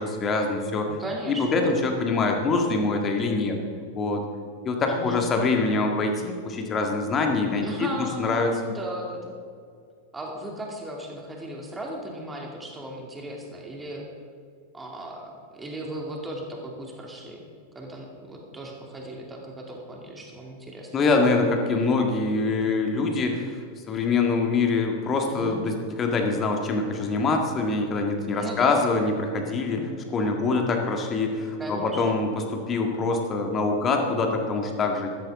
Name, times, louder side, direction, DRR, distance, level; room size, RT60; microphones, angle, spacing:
voice 1, 0.0-0.9 1.3-3.6 4.0-4.2 4.7-7.6 8.2-8.5 20.9-23.6 23.9-35.1, left 3 dB, 25° left, 3 dB, 1.8 m, -24 dB
voice 2, 0.9-1.8 4.9-5.3 7.5-9.3 10.1-14.1 14.7-17.4 17.7-20.9 25.3-25.6 28.3-28.9 31.6-32.2, right 1 dB, 10° right, 0 dB, 2.6 m, -36 dB
14.0 x 13.5 x 3.7 m, 2.2 s
figure-of-eight pair, 90°, 0 cm